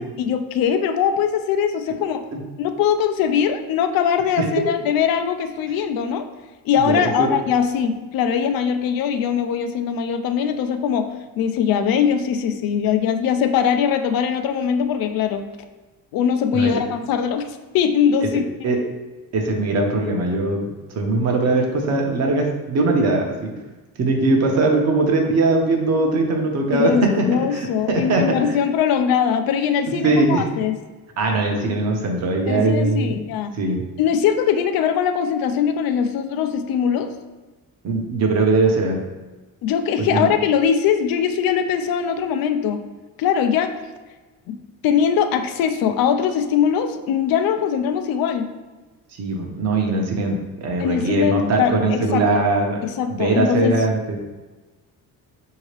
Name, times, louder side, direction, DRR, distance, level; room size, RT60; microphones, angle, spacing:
voice 1, 0.0-2.2 2.6-6.3 6.7-11.1 11.4-15.5 16.1-18.5 26.7-30.8 32.5-33.5 34.0-37.1 39.6-42.8 43.2-43.8 44.5-44.6 44.8-48.5 50.8-52.5 52.8-53.8, left 8 dB, 75° left, 8 dB, 0.5 m, -21 dB
voice 2, 6.8-7.3 16.5-16.7 18.6-18.8 19.3-23.5 24.0-28.4 29.9-30.4 31.2-33.2 33.6-33.8 37.8-39.0 40.0-40.3 49.2-52.8 53.1-54.2, right 2 dB, 45° right, 1 dB, 0.8 m, -20 dB
5.5 x 2.8 x 3.2 m, 1.2 s
cardioid pair, 170°, 36 cm